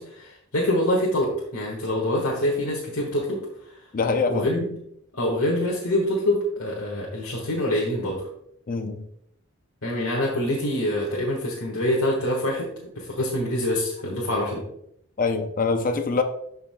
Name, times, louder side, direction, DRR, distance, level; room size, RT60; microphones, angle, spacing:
voice 1, 0.0-3.4 4.3-4.6 5.1-8.3 9.8-12.7 12.9-14.6, left 1 dB, 70° left, -3 dB, 1.6 m, -25 dB
voice 2, 3.9-4.5 8.7-9.0 15.2-16.2, left 4 dB, 40° left, 7 dB, 0.6 m, -24 dB
12.0 x 5.6 x 2.3 m, 0.75 s
head